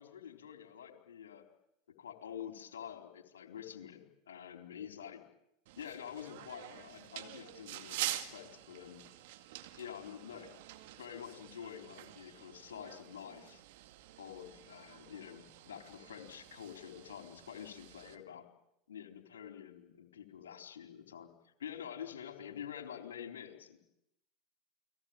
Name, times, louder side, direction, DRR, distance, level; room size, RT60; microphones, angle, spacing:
voice 1, 0.0-1.5 1.9-5.2 5.8-9.0 9.8-10.5 11.0-13.6 14.2-18.5 18.9-21.3 21.6-23.8, left 9 dB, 80° left, 5 dB, 4.1 m, -47 dB
sound 1, 5.7-18.2, right 15 dB, 65° right, 2.2 m, -47 dB
29.5 x 21.0 x 9.0 m, 0.83 s
hypercardioid pair, 85°, 0 cm